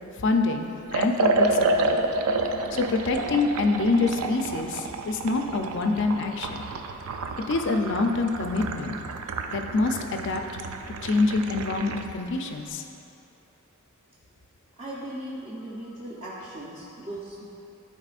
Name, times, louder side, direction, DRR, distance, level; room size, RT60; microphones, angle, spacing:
voice 1, 0.2-1.9 2.7-6.6 7.5-9.0 9.5-10.4 11.0-12.8, left 3 dB, 60° left, 5 dB, 0.5 m, -26 dB
Liquid, 0.9-12.1, right 2 dB, 90° right, 0.4 m, -29 dB
voice 2, 14.8-17.5, right 1 dB, 30° right, -9 dB, 0.8 m, -38 dB
12.0 x 4.2 x 2.5 m, 2.9 s
head